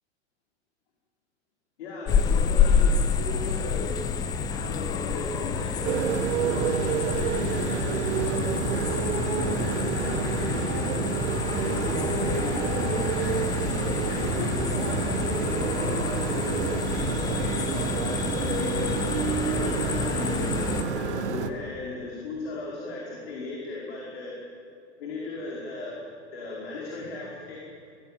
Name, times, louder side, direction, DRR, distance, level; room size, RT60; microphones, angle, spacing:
voice 1, 1.8-4.0 4.5-11.1 11.5-18.7 19.2-24.3 25.0-26.0 26.3-27.6, left 3 dB, 60° left, -3 dB, 5.3 m, -36 dB
sound 1, 2.1-20.8, left 6 dB, 10° left, 0.7 m, -28 dB
Motorcycle, 5.8-21.5, right 7 dB, 75° right, 1.8 m, -29 dB
25.0 x 17.5 x 9.2 m, 2.5 s
supercardioid pair, 170°, 34 cm